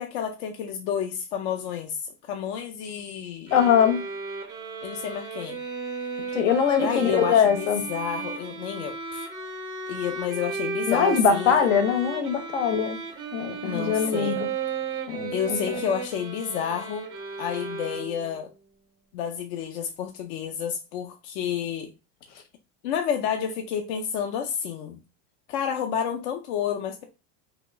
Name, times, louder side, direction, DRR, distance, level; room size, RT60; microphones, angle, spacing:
voice 1, 0.0-3.6 4.8-5.6 6.8-9.3 9.9-11.6 13.6-14.4 15.3-17.1 17.4-18.5 19.1-21.9 22.8-25.0 25.5-27.0, left 8 dB, 60° left, 0.6 m, -30 dB
voice 2, 3.5-4.0 6.3-7.8 10.9-13.0 13.3-14.5 15.1-15.6, left 7 dB, 80° left, 1.0 m, -22 dB
sound 1, 3.5-18.4, right 5 dB, 10° right, 0.3 m, -34 dB
3.0 x 2.9 x 3.5 m
cardioid pair, 180°, 36 cm